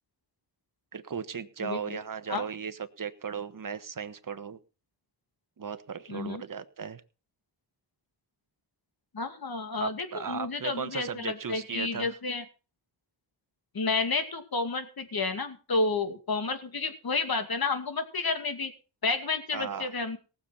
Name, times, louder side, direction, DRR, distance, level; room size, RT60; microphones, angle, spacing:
voice 1, 0.9-4.6 5.6-7.0 9.8-12.2 19.5-19.9, right 6 dB, 45° right, 11 dB, 1.3 m, -36 dB
voice 2, 6.1-6.4 9.1-12.4 13.7-18.7 19.0-20.2, left 3 dB, 50° left, 7 dB, 2.5 m, -30 dB
18.5 x 7.3 x 5.8 m, 0.35 s
cardioid pair, 85°, 46 cm